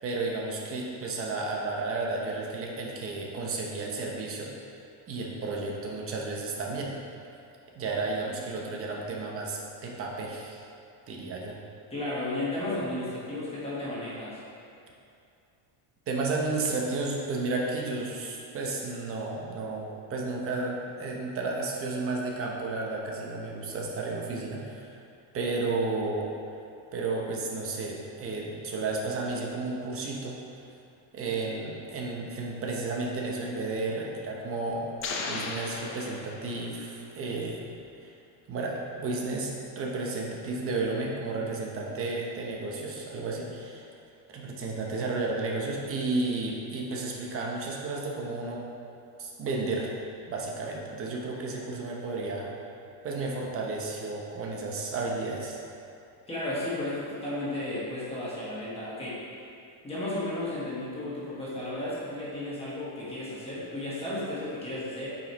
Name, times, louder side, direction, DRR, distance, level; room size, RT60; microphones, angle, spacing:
voice 1, 0.0-4.5 5.1-7.0 7.8-10.6 11.1-11.6 16.1-25.0 25.3-26.3 26.9-30.4 31.1-34.9 35.3-37.6 38.0-38.1 38.5-43.9 44.3-48.6 49.2-49.9 50.3-52.5 53.0-55.6, right 3 dB, 30° right, -1 dB, 0.8 m, -32 dB
voice 2, 11.9-14.4 56.3-59.2 59.8-65.2, left 1 dB, 10° left, -9 dB, 1.3 m, -33 dB
sound 1, 35.0-36.9, left 3 dB, 30° left, 0.5 m, -36 dB
8.5 x 5.1 x 3.0 m, 2.6 s
cardioid pair, 170°, 47 cm